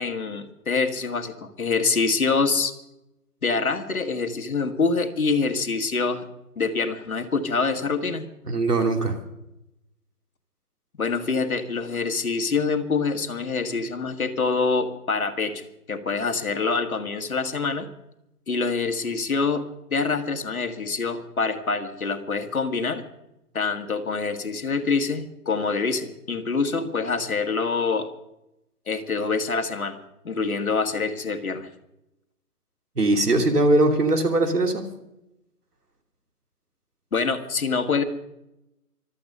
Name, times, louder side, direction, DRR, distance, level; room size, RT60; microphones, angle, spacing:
voice 1, 0.0-2.7 3.4-6.3 6.6-8.3 11.0-17.9 18.5-19.6 19.9-23.0 23.5-28.1 28.9-30.0 30.2-31.7 37.1-38.0, left 4 dB, 60° left, 7 dB, 2.0 m, -25 dB
voice 2, 8.5-9.2 33.0-34.8, right 2 dB, 75° right, 4 dB, 3.2 m, -20 dB
25.5 x 8.6 x 5.5 m, 0.87 s
figure-of-eight pair, 155°, 47 cm